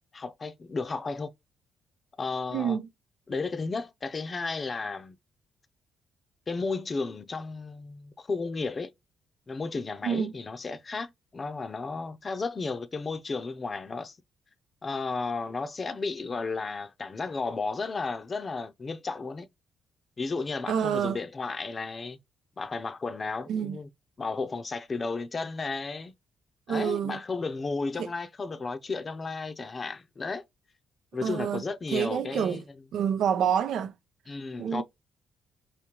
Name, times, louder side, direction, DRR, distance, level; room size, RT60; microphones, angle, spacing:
voice 1, 0.1-1.3 2.2-2.8 3.3-5.2 6.5-8.9 9.5-14.2 14.8-19.5 20.2-22.2 22.6-23.9 24.2-26.1 26.7-30.4 31.1-32.6 34.3-34.8, left 4 dB, 35° left, 0.6 m, -33 dB
voice 2, 2.5-2.9 10.0-10.3 20.7-21.2 23.5-23.8 26.7-27.2 28.0-28.1 31.2-32.6 32.9-33.9 34.6-34.8, right 8 dB, 75° right, 0.6 m, -28 dB
5.1 x 2.6 x 2.9 m
cardioid pair, 90°, 0 cm